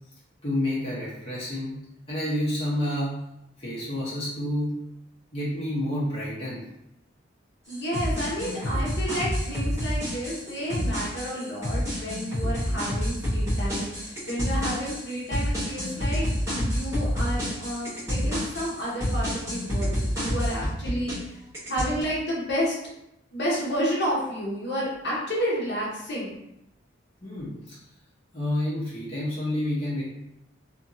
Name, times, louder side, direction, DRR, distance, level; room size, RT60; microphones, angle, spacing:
voice 1, 0.4-1.8 2.1-3.1 3.6-4.7 5.3-6.6 27.2-27.8 28.3-30.0, left 1 dB, 30° left, -8 dB, 0.8 m, -29 dB
voice 2, 7.7-21.1 21.7-22.7 23.3-26.4, equal, 60° left, -5 dB, 0.9 m, -30 dB
sound 1, 7.7-21.3 21.5-22.0, equal, 15° right, 1.2 m, -28 dB
2.7 x 2.7 x 2.6 m, 0.83 s
head